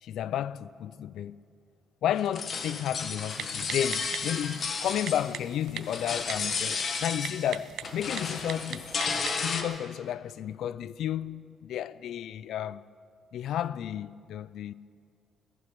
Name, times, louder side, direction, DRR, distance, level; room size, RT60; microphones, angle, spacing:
voice 1, 0.0-1.4 2.0-8.9 9.4-12.8 13.3-14.7, left 10 dB, 75° left, 0.4 m, -32 dB
sound 1, 2.2-5.5 5.8-7.5 7.8-9.6, left 5 dB, 50° left, 1.5 m, -33 dB
Typing, 3.3-9.5, right 10 dB, 80° right, 0.6 m, -42 dB
18.5 x 14.5 x 5.3 m
cardioid pair, 90°, 0 cm